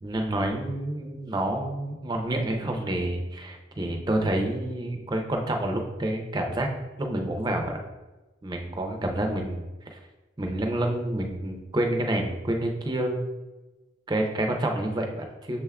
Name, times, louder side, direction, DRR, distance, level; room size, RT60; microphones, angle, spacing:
voice 1, 0.0-6.7 7.0-7.8 8.4-9.7 10.4-13.2 14.1-15.6, right 1 dB, 20° right, 3 dB, 0.5 m, -28 dB
6.1 x 2.2 x 3.5 m, 1.1 s
head